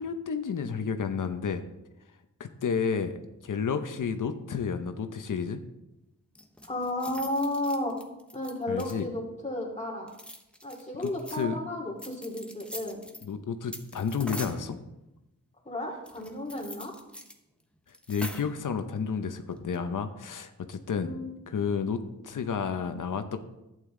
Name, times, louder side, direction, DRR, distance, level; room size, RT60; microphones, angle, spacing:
voice 1, 0.0-1.6 2.4-3.1 3.4-5.6 8.7-9.0 11.0-11.6 13.2-14.8 18.1-21.1 21.5-23.4, left 6 dB, 80° left, 8 dB, 0.8 m, -31 dB
Keys in hands and on table, 6.3-9.2 10.0-11.4 12.0-13.3 13.7-14.7 16.1-17.3 17.6-17.7 17.9-18.6 19.5-19.8, equal, 5° left, 1.1 m, -43 dB
voice 2, 6.7-8.0 8.3-10.1 10.6-13.0 15.6-16.9 21.0-21.3, left 1 dB, 20° left, -2 dB, 2.5 m, -33 dB
11.5 x 9.1 x 3.8 m, 0.93 s
wide cardioid pair, 90°, 31 cm